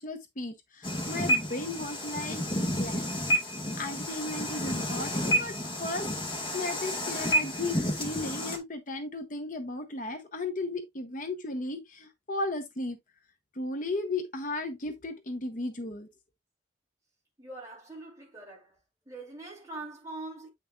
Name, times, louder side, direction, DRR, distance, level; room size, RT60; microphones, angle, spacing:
voice 1, 0.0-3.1 3.5-5.5 5.8-6.1 6.5-13.0 13.5-16.1, left 2 dB, 40° left, 0.8 m, -35 dB
sound 1, 0.8-8.6, equal, 25° left, 1.9 m, -30 dB
voice 2, 17.4-18.8 19.0-20.5, right 2 dB, 15° right, 3.2 m, -43 dB
8.4 x 6.0 x 2.4 m
head